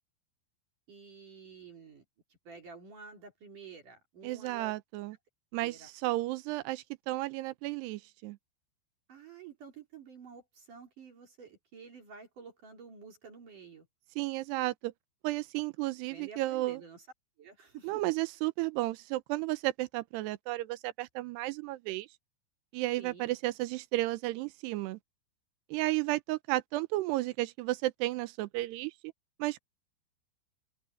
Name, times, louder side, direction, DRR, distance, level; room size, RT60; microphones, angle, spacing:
voice 1, 0.9-2.0 2.4-4.7 5.6-5.9 9.1-13.9 16.1-17.1 17.4-18.0 23.0-23.3, right 5 dB, 45° right, 4.5 m, -50 dB
voice 2, 4.2-5.2 5.5-8.4 14.2-14.9 15.2-16.8 17.8-22.1 22.7-25.0 25.7-28.9 29.4-29.6, right 18 dB, 80° right, 2.5 m, -33 dB
open air
omnidirectional pair, 5.5 m